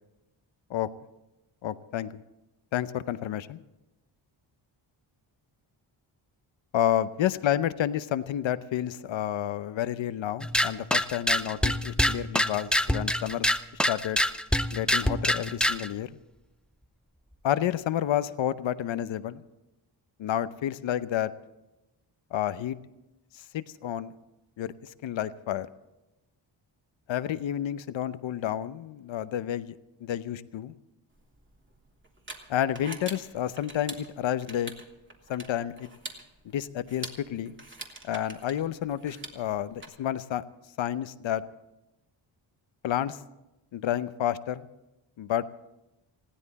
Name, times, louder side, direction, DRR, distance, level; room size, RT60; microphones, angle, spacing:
voice 1, 1.6-2.2 2.7-3.6 6.7-13.5 13.9-14.2 14.7-16.1 17.4-19.4 20.2-21.3 22.3-22.8 23.3-24.1 24.6-25.7 27.1-29.7 30.0-30.7 32.5-34.7 35.3-35.9 36.4-37.6 38.0-40.4 40.8-41.4 42.8-43.2 43.7-44.7 45.2-45.4, left 11 dB, 75° left, 14 dB, 0.9 m, -30 dB
sound 1, 10.4-15.9, left 1 dB, ahead, 0.5 m, -26 dB
sound 2, 31.1-39.8, right 2 dB, 25° right, 2.4 m, -45 dB
20.0 x 16.0 x 4.2 m, 0.95 s
cardioid pair, 90°, 47 cm